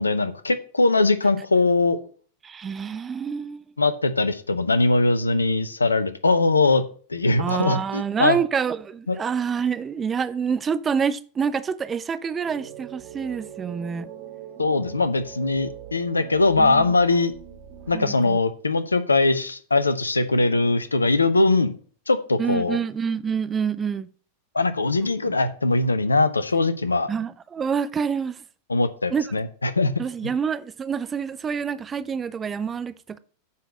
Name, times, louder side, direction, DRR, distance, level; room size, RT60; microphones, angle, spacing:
voice 1, 0.0-2.0 3.8-6.8 7.1-8.4 9.1-9.2 14.6-17.3 17.9-21.7 22.1-22.8 24.5-27.1 28.7-29.9, left 3 dB, 80° left, 0.7 m, -21 dB
voice 2, 2.4-3.6 7.4-14.1 16.6-16.9 17.9-18.4 22.4-24.1 27.1-28.4 29.1-29.2 30.0-33.2, right 6 dB, 20° right, 0.5 m, -27 dB
sound 1, 12.4-18.1, right 11 dB, 40° right, 2.0 m, -41 dB
9.5 x 4.1 x 6.4 m
figure-of-eight pair, 90°, 0 cm